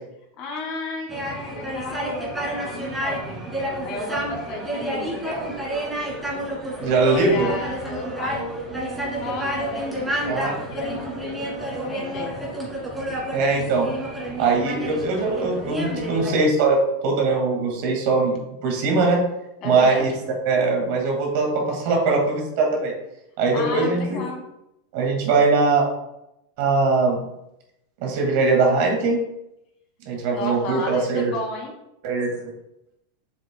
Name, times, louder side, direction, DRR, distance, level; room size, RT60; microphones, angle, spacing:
voice 1, 0.4-3.4 3.8-5.5 7.1-8.6 9.2-11.4 11.9-12.3 19.6-20.0 23.5-24.4 30.3-31.8, left 2 dB, 45° left, 0 dB, 2.2 m, -33 dB
sound 1, 1.1-16.3, right 1 dB, 10° right, 1.9 m, -30 dB
voice 2, 6.8-7.5 10.3-10.5 13.3-13.9 14.4-19.2 19.6-20.1 20.5-22.9 23.4-24.2 24.9-25.9 26.6-27.2 28.0-29.2 30.1-31.3 32.0-32.5, right 3 dB, 60° right, 1 dB, 2.0 m, -21 dB
7.2 x 6.8 x 2.3 m, 0.86 s
supercardioid pair, 145°, 0 cm